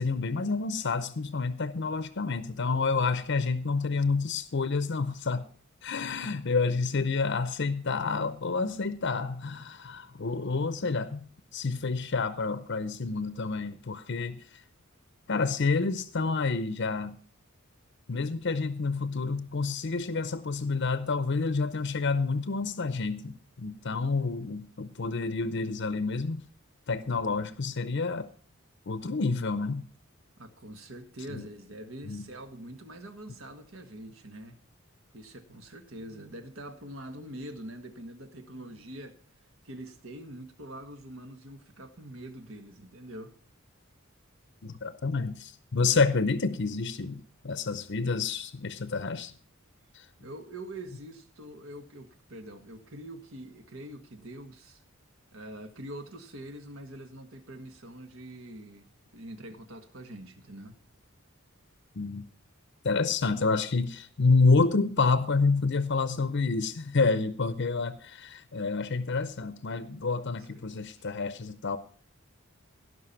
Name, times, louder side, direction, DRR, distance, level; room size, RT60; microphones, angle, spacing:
voice 1, 0.0-5.5 5.8-11.2 11.5-14.4 15.3-17.2 18.1-26.4 26.9-28.3 28.9-29.8 32.1-32.2 44.6-49.3 49.9-50.0 62.0-62.2 62.8-71.8, left 4 dB, 55° left, 0.7 m, -28 dB
voice 2, 30.4-34.6 35.1-39.2 39.6-43.3 50.2-54.8 55.3-60.8 70.2-71.0, right 1 dB, 65° right, 1.6 m, -44 dB
17.5 x 5.8 x 5.8 m
head